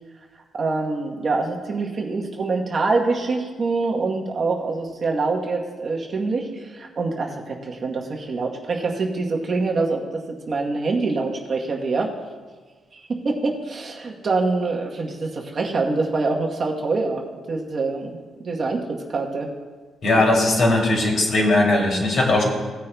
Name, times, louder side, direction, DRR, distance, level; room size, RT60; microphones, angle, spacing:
voice 1, 0.5-10.0 10.5-12.1 12.9-13.0 13.2-19.5, right 3 dB, 35° right, 0 dB, 1.0 m, -25 dB
voice 2, 20.0-22.4, left 2 dB, 45° left, -1 dB, 2.6 m, -19 dB
17.5 x 9.7 x 2.2 m, 1.4 s
cardioid pair, 165°, 0 cm